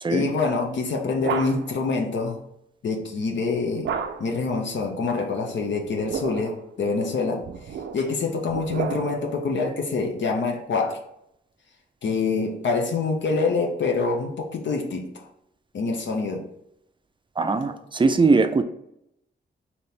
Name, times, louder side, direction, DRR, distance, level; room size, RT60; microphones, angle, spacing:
voice 1, 0.1-2.4 2.8-3.9 4.2-7.4 7.9-11.0 12.0-15.3 15.7-16.4, left 4 dB, 75° left, 2 dB, 0.7 m, -26 dB
sound 1, 0.7-1.9 3.8-4.5 5.8-6.6 7.4-9.4, right 6 dB, 90° right, 0.4 m, -32 dB
voice 2, 17.4-18.6, right 4 dB, 25° right, 9 dB, 0.4 m, -20 dB
4.1 x 2.9 x 3.3 m, 0.78 s
cardioid pair, 85°, 19 cm